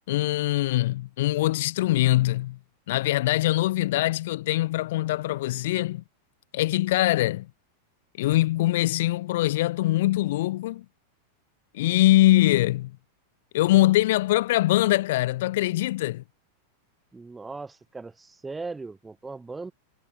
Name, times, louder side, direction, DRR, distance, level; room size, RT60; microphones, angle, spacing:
voice 1, 0.1-2.6 2.9-6.0 6.5-7.5 8.2-10.8 11.7-12.9 13.5-16.2, left 16 dB, 55° left, 1.0 m, -23 dB
voice 2, 17.1-19.7, right 3 dB, 10° right, 1.7 m, -38 dB
figure-of-eight pair, 90°, 0 cm